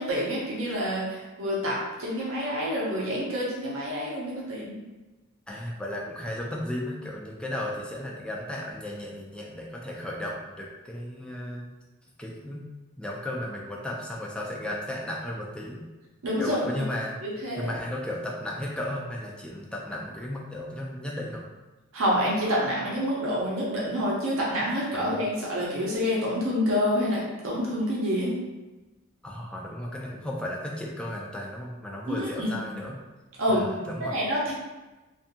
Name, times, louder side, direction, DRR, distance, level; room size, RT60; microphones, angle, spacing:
voice 1, 0.0-4.8 16.2-16.6 17.2-17.7 21.9-28.3 32.1-32.6 33.4-33.7 34.1-34.5, equal, 70° right, -5 dB, 0.6 m, -27 dB
voice 2, 5.5-11.7 12.2-12.6 13.0-15.8 16.4-17.1 17.6-21.4 24.9-25.1 29.2-33.0 33.5-34.1, left 1 dB, 5° left, -3 dB, 0.3 m, -34 dB
2.6 x 2.3 x 2.6 m, 1.1 s
head